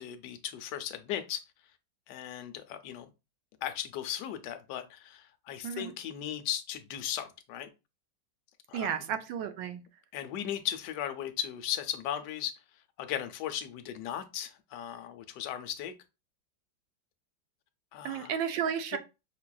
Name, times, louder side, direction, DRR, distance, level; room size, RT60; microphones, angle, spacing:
voice 1, 0.0-1.4 2.1-3.1 3.6-7.7 8.7-9.1 10.1-12.5 13.0-15.9 17.9-18.3 18.9-19.0, left 10 dB, 70° left, 1.1 m, -37 dB
voice 2, 8.7-9.8 18.0-19.0, right 8 dB, 80° right, 1.3 m, -33 dB
5.8 x 2.4 x 2.2 m
omnidirectional pair, 2.1 m